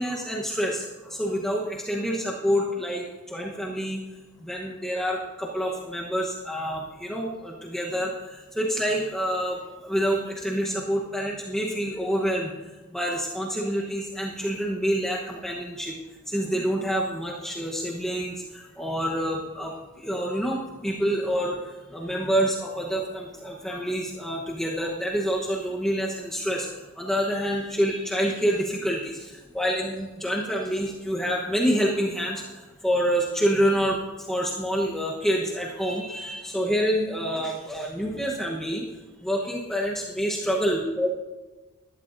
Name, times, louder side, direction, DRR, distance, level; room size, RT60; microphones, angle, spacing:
voice 1, 0.0-4.0 4.4-12.5 12.9-16.0 16.3-34.0 34.3-38.9 39.2-41.1, equal, 5° left, -4 dB, 1.0 m, -27 dB
19.0 x 13.0 x 2.7 m, 1.2 s
head